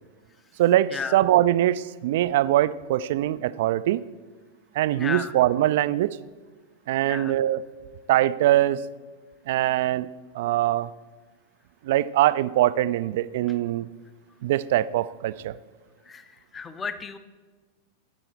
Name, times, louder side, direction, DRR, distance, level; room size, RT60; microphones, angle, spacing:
voice 1, 0.6-4.0 4.8-6.2 6.9-7.6 8.1-8.8 9.5-10.1 10.3-10.9 11.8-13.9 14.4-15.5, right 13 dB, 55° right, 16 dB, 0.3 m, -22 dB
voice 2, 5.0-5.3 7.0-7.3 16.1-16.3 16.5-17.2, left 5 dB, 20° left, 12 dB, 0.7 m, -33 dB
14.5 x 6.3 x 4.4 m, 1.4 s
figure-of-eight pair, 90°, 0 cm